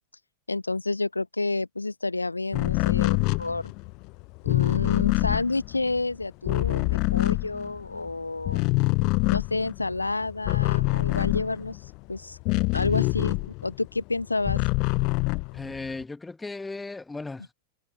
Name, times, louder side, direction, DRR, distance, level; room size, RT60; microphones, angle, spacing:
voice 1, 0.5-3.7 4.4-8.6 9.3-12.4 12.7-14.6, left 3 dB, 80° left, 1.2 m, -30 dB
sound 1, 2.5-8.1 8.4-13.9 14.2-16.0, left 28 dB, 45° left, 0.4 m, -25 dB
voice 2, 15.5-17.5, left 3 dB, 10° left, 1.5 m, -36 dB
figure-of-eight pair, 90°, 0 cm